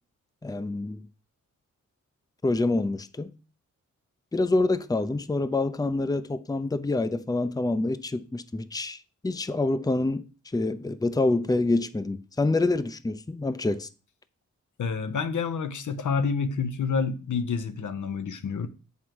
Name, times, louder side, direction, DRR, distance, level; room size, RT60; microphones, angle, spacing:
voice 1, 0.4-1.0 2.4-3.3 4.3-9.0 9.2-10.2 10.5-13.9, left 2 dB, 10° left, 0.6 m, -26 dB
voice 2, 14.8-18.7, left 5 dB, 80° left, 0.9 m, -28 dB
7.5 x 5.6 x 4.7 m
cardioid pair, 50°, 30 cm